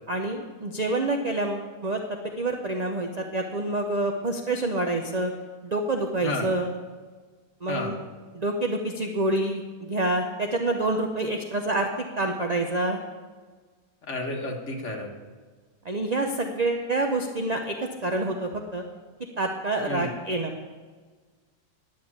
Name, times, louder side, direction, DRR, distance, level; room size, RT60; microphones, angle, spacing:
voice 1, 0.1-5.3 5.6-6.7 7.6-8.0 8.3-11.9 12.2-13.0 15.8-17.7 18.0-18.8 19.4-20.5, right 2 dB, 40° right, 4 dB, 0.6 m, -27 dB
voice 2, 14.1-15.1 19.9-20.1, left 2 dB, 50° left, 1 dB, 1.7 m, -31 dB
11.0 x 6.4 x 8.5 m, 1.5 s
omnidirectional pair, 1.7 m